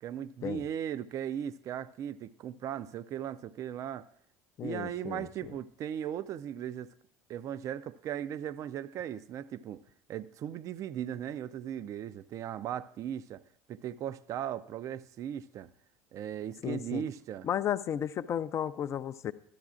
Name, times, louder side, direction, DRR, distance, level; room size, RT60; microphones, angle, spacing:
voice 1, 0.0-4.1 4.6-6.9 7.3-9.8 10.1-13.4 13.7-15.7 16.1-17.5, right 10 dB, 45° right, 0.4 m, -37 dB
voice 2, 4.6-5.3 16.6-17.0 17.4-19.3, left 10 dB, 40° left, 0.4 m, -33 dB
13.5 x 11.5 x 2.4 m
hypercardioid pair, 75°, 8 cm